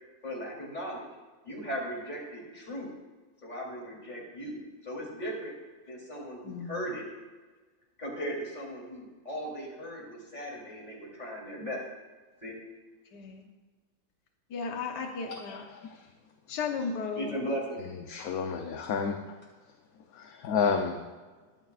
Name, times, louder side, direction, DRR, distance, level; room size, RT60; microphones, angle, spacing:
voice 1, 0.2-1.0 1.4-2.9 3.4-5.5 5.9-7.0 8.0-11.8 12.4-12.5 17.1-17.8, equal, 25° left, -3 dB, 3.4 m, -37 dB
voice 2, 6.4-6.8 13.1-13.4 14.5-15.6 16.5-17.5, left 5 dB, 90° left, 3 dB, 1.7 m, -35 dB
voice 3, 15.3-16.0 18.1-19.2 20.1-21.0, left 6 dB, 65° left, 4 dB, 1.2 m, -30 dB
21.5 x 9.2 x 2.5 m, 1.3 s
omnidirectional pair, 1.8 m